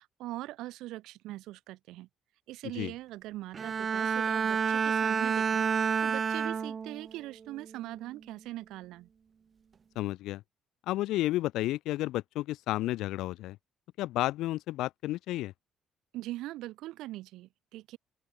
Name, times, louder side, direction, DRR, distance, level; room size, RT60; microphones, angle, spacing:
voice 1, 0.0-2.1 2.5-9.1 16.1-18.0, right 17 dB, 85° right, 2.8 m, -42 dB
Bowed string instrument, 3.5-7.1 7.6-8.0, right 6 dB, 30° right, 0.4 m, -29 dB
voice 2, 10.0-10.4 10.9-13.6 14.0-15.5, left 16 dB, 80° left, 0.7 m, -31 dB
open air
cardioid pair, 170°, 0 cm